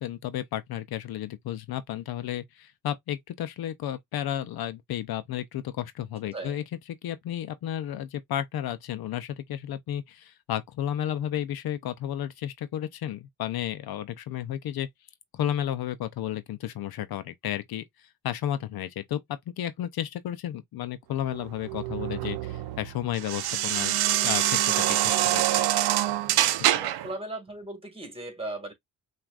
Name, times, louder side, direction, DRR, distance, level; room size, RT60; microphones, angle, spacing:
voice 1, 0.0-6.6 7.0-14.9 15.3-17.8 18.2-19.2 19.6-24.0 24.2-25.5 26.7-26.8, left 11 dB, 70° left, 0.6 m, -32 dB
voice 2, 6.3-6.6 26.7-28.7, right 2 dB, 15° right, 1.8 m, -37 dB
sound 1, 21.3-27.1, right 13 dB, 85° right, 0.5 m, -25 dB
5.9 x 2.5 x 2.4 m
cardioid pair, 95°, 38 cm